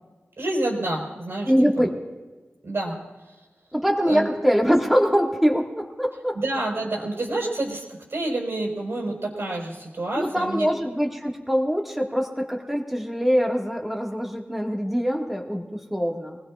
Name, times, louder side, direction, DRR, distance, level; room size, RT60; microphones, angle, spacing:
voice 1, 0.4-1.5 1.8-1.9 2.6-3.0 4.1-4.3 6.3-10.7, right 2 dB, 70° right, -1 dB, 4.8 m, -28 dB
voice 2, 1.4-2.0 3.7-6.4 10.2-16.4, equal, 5° right, 0 dB, 1.8 m, -23 dB
26.5 x 20.0 x 2.4 m, 1.2 s
wide cardioid pair, 100°, 4 cm